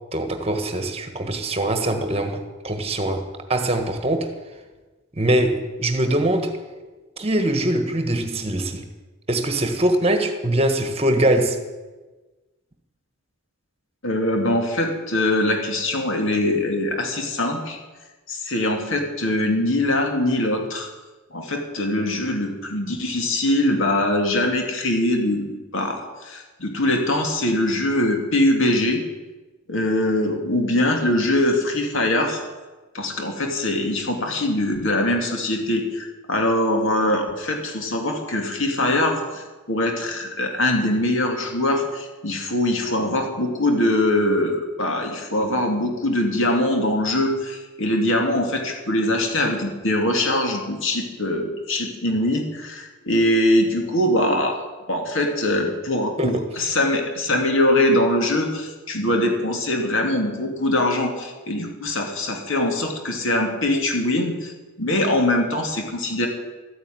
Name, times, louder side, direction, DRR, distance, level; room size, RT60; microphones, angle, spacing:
voice 1, 0.1-4.3 5.1-6.5 7.2-8.9 9.3-11.6 56.2-56.4, right 1 dB, 25° right, 7 dB, 1.4 m, -22 dB
voice 2, 14.0-17.8 18.3-20.9 21.3-29.0 29.7-32.4 32.9-54.6 54.9-64.5 64.8-66.3, left 1 dB, 55° left, 3 dB, 2.6 m, -22 dB
13.5 x 9.1 x 9.3 m, 1.2 s
head